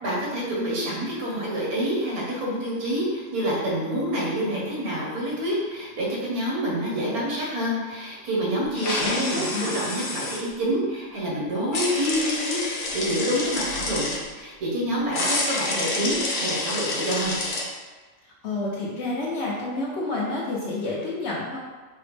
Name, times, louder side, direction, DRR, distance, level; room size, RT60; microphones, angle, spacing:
voice 1, 0.0-14.1 14.3-17.3, equal, 85° right, -5 dB, 1.5 m, -27 dB
sound 1, 8.7-10.4 11.7-14.2 15.1-17.7, left 2 dB, 80° left, 1.1 m, -28 dB
voice 2, 9.0-9.8 18.4-21.6, left 2 dB, 60° left, -4 dB, 0.8 m, -29 dB
4.1 x 2.0 x 3.2 m, 1.3 s
omnidirectional pair, 1.5 m